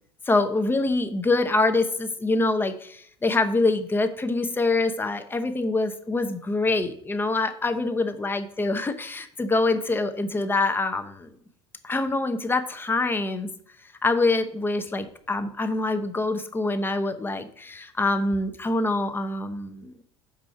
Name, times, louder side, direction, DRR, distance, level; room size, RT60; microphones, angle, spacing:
voice 1, 0.3-11.3 11.8-13.5 14.0-19.9, left 2 dB, 15° left, 8 dB, 0.7 m, -25 dB
6.1 x 4.9 x 5.6 m, 0.65 s
figure-of-eight pair, 65°, 15 cm